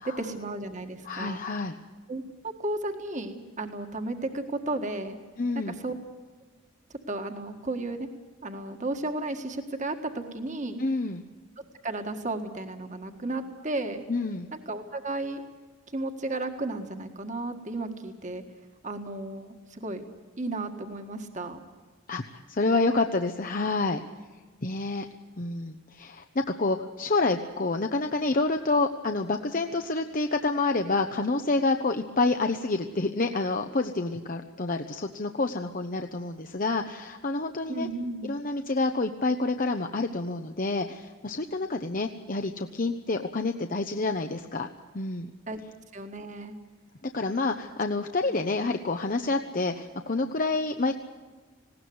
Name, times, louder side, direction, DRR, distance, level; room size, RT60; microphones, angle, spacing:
voice 1, 0.0-1.4 2.1-2.2 2.6-5.2 5.6-5.9 7.1-8.1 8.4-10.8 11.8-14.0 14.5-15.4 15.9-18.4 18.8-20.0 20.4-21.6 37.7-38.4 45.5-45.6 45.9-46.5, right 2 dB, 35° right, 5 dB, 1.7 m, -33 dB
voice 2, 1.0-1.7 5.4-5.8 10.8-11.2 14.1-14.5 22.1-24.0 24.6-25.1 25.4-37.9 38.2-44.7 44.9-45.3 47.1-50.9, left 3 dB, 40° left, 6 dB, 0.8 m, -28 dB
20.0 x 17.5 x 9.5 m, 1.4 s
head